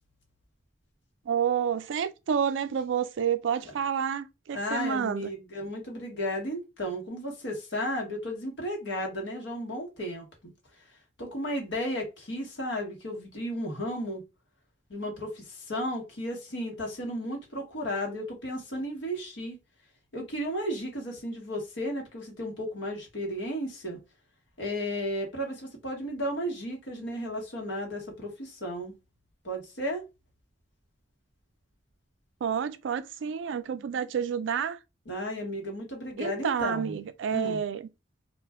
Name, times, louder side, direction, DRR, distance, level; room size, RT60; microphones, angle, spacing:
voice 1, 1.3-5.3 32.4-34.8 36.2-37.9, right 7 dB, 85° right, 0.4 m, -29 dB
voice 2, 4.5-10.3 11.2-14.2 14.9-19.6 20.1-24.0 24.6-28.9 29.4-30.0 35.1-36.9 37.3-37.6, equal, 90° left, 1.2 m, -34 dB
2.4 x 2.2 x 3.4 m
head